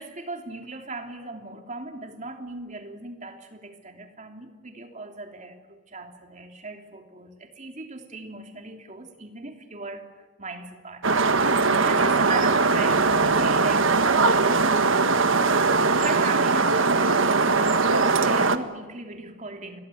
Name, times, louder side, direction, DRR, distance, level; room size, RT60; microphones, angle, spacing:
voice 1, 0.0-10.1 10.4-14.8 15.9-17.9 18.2-19.8, right 3 dB, 35° right, 3.1 m, -38 dB
sound 1, 11.0-18.6, right 4 dB, 70° right, 1.5 m, -20 dB
28.0 x 22.5 x 7.9 m
head